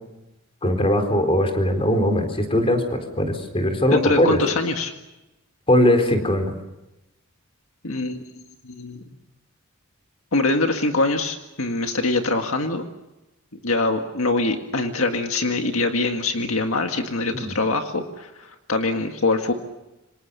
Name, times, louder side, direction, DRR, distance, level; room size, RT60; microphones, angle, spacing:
voice 1, 0.6-4.4 5.7-6.5 17.4-17.6, left 1 dB, 25° left, 6 dB, 4.1 m, -20 dB
voice 2, 3.9-4.9 7.8-8.2 8.6-9.0 10.3-12.8 13.6-19.5, left 2 dB, 70° left, 5 dB, 1.9 m, -23 dB
28.0 x 25.5 x 6.9 m, 0.97 s
head